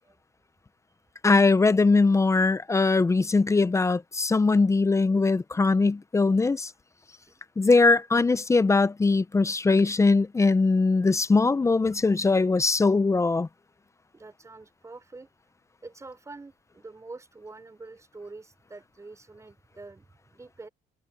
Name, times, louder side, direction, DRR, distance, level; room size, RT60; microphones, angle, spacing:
voice 1, 1.2-6.7 7.6-13.5, left 3 dB, 15° left, 0.7 m, -21 dB
voice 2, 14.1-15.3 15.8-20.1 20.3-20.7, right 3 dB, 20° right, 4.9 m, -46 dB
cardioid pair, 110°, 17 cm